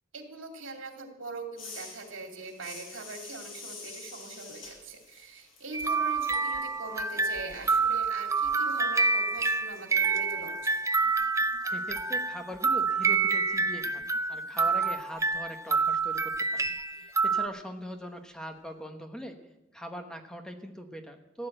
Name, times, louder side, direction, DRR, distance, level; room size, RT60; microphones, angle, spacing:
voice 1, 0.1-10.7, right 3 dB, 80° right, 3 dB, 2.6 m, -42 dB
sound 1, 1.6-7.1 7.4-12.2, left 3 dB, 85° left, 7.0 m, -49 dB
sound 2, 5.7-17.5, right 4 dB, 15° right, 0.6 m, -28 dB
voice 2, 11.6-16.6 16.9-19.4 19.7-21.5, equal, 5° left, 5 dB, 1.1 m, -41 dB
15.5 x 9.7 x 7.9 m, 0.97 s
head